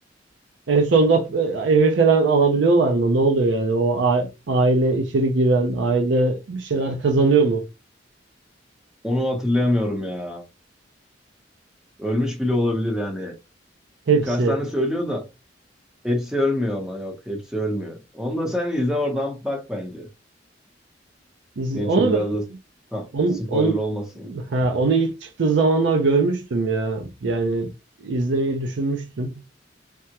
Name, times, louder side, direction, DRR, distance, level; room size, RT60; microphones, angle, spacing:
voice 1, 0.7-7.6 14.1-14.6 21.6-22.2 23.1-23.8 24.3-27.7 28.0-29.3, right 3 dB, 75° right, 0.5 m, -20 dB
voice 2, 9.0-10.4 12.0-13.3 14.2-15.3 16.0-20.1 21.7-22.4 22.9-23.1 23.5-24.4, left 1 dB, 5° right, 0.7 m, -25 dB
3.4 x 2.0 x 2.8 m
head